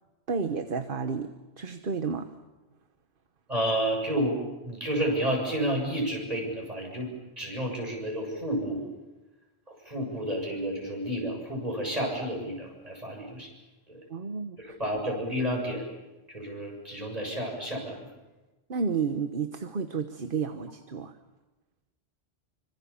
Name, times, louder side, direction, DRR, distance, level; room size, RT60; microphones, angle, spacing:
voice 1, 0.3-1.3 1.6-2.3 14.1-14.7 18.7-21.1, right 5 dB, 55° right, 8 dB, 1.3 m, -31 dB
voice 2, 3.5-7.1 7.4-8.8 9.9-13.5 13.9-14.0 14.6-15.9 16.3-17.9, equal, 35° right, 0 dB, 7.4 m, -30 dB
26.5 x 25.5 x 7.2 m, 1.1 s
omnidirectional pair, 1.1 m